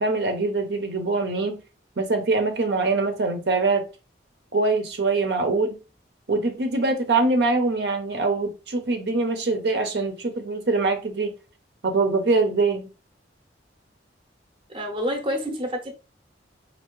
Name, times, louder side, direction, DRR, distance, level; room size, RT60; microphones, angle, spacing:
voice 1, 0.0-1.6 2.0-3.9 4.5-5.8 6.3-11.3 11.8-12.9, right 3 dB, 65° right, 0.7 m, -23 dB
voice 2, 14.7-15.9, equal, 30° right, 0.7 m, -28 dB
4.3 x 2.7 x 3.1 m
head